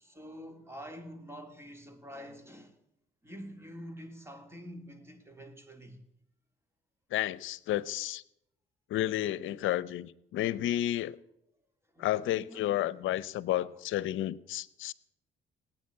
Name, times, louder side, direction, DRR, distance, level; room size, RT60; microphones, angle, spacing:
voice 1, 0.0-2.8 3.2-6.0 11.9-12.9 13.5-13.7, equal, 10° right, 2.8 m, -47 dB
voice 2, 7.1-8.2 8.9-11.2 12.0-14.9, left 13 dB, 85° left, 0.7 m, -31 dB
18.5 x 9.1 x 8.6 m
cardioid pair, 90°, 20 cm